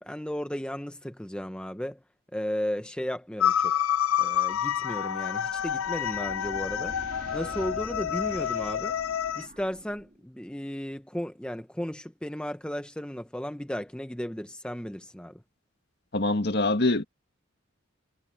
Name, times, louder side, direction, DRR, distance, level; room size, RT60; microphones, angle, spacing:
voice 1, 0.0-2.0 2.3-3.8 4.2-7.0 7.3-9.0 9.3-15.4, equal, 5° left, 0.7 m, -35 dB
sound 1, 3.4-9.5, left 9 dB, 90° left, 0.6 m, -28 dB
sound 2, 4.8-10.2, right 1 dB, 40° right, 2.2 m, -46 dB
voice 2, 16.1-17.0, left 2 dB, 55° left, 1.8 m, -24 dB
head